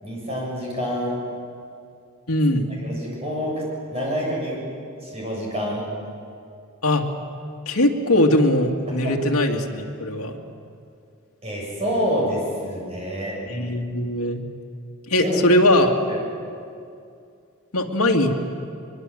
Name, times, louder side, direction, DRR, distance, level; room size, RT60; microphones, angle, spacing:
voice 1, 0.0-1.2 2.8-3.6 3.9-4.6 5.0-5.9 9.0-9.1 11.4-13.4 15.2-15.4 16.1-16.2, equal, 25° right, -3 dB, 7.6 m, -27 dB
voice 2, 2.3-2.7 6.8-7.1 7.7-10.4 13.5-14.4 15.1-15.9 17.7-18.3, left 1 dB, 75° left, 1 dB, 2.3 m, -20 dB
24.0 x 22.5 x 7.7 m, 2.4 s
head